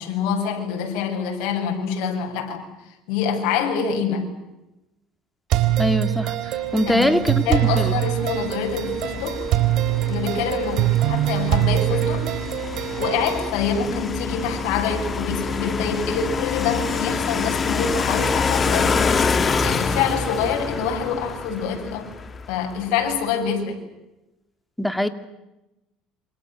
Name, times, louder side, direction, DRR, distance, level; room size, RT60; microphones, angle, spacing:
voice 1, 0.0-2.7 3.1-4.3 6.8-9.5 10.1-12.3 13.0-19.2 19.6-22.1 22.5-23.8, left 6 dB, 75° left, 7.7 m, -26 dB
sound 1, 5.5-13.5, right 14 dB, 60° right, 3.6 m, -23 dB
voice 2, 5.8-6.3 6.7-7.9 24.8-25.1, left 1 dB, 5° left, 2.6 m, -22 dB
sound 2, 6.7-22.9, left 4 dB, 25° left, 2.4 m, -27 dB
28.0 x 27.5 x 7.7 m
supercardioid pair, 115°, 0 cm